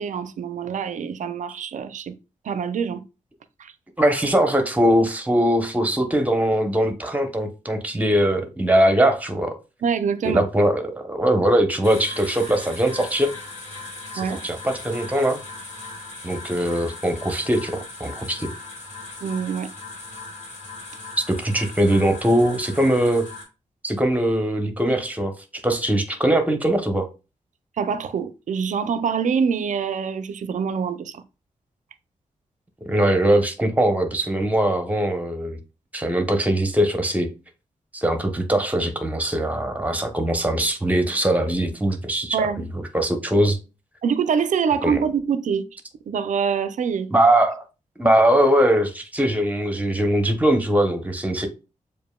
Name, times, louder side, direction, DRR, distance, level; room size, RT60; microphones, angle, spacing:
voice 1, 0.0-2.2 2.4-3.0 3.6-3.7 9.8-10.4 14.2-14.4 19.2-19.7 27.8-31.2 42.3-42.7 44.0-45.6 46.1-47.1, right 6 dB, 70° right, 0.4 m, -25 dB
voice 2, 4.0-9.6 10.2-13.3 14.1-15.4 16.2-18.5 21.2-23.3 23.8-27.1 32.9-35.6 35.9-37.3 37.9-43.6 44.8-45.0 47.1-47.7 48.0-51.5, right 1 dB, 10° right, 0.8 m, -21 dB
sound 1, 11.8-23.4, left 2 dB, 60° left, 2.1 m, -38 dB
7.1 x 2.6 x 2.2 m
wide cardioid pair, 100°, 13 cm